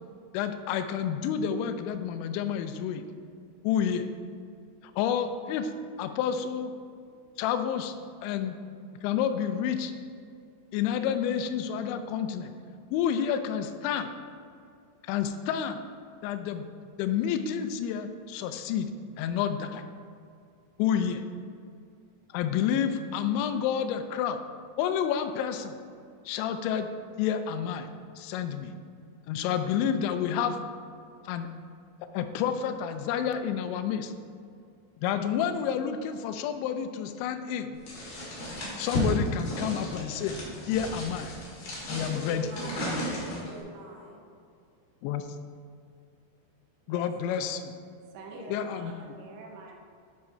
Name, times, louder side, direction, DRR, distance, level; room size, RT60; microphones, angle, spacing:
voice 1, 0.3-3.1 3.6-4.1 5.0-5.7 6.0-6.7 7.4-8.0 8.2-8.6 9.0-9.9 10.7-12.5 12.9-14.1 15.0-15.8 16.2-16.6 17.0-18.9 19.2-19.8 20.8-21.2 22.3-24.4 24.8-25.8 26.3-26.9 27.2-27.9 28.2-28.7 29.3-30.6 31.3-31.5 32.1-34.1 35.0-37.8 38.8-40.4 40.6-41.3 41.9-42.5 45.0-45.3 46.9-47.7 48.5-49.2, left 8 dB, 85° left, 8 dB, 2.7 m, -29 dB
sound 1, 37.9-43.6, equal, 50° left, 2.1 m, -34 dB
voice 2, 42.1-43.1 43.4-44.2 48.3-49.2, right 1 dB, 60° right, -6 dB, 2.9 m, -43 dB
voice 3, 48.1-49.8, right 4 dB, 80° right, 1 dB, 2.9 m, -47 dB
9.5 x 4.8 x 4.3 m, 2.4 s
omnidirectional pair, 5.7 m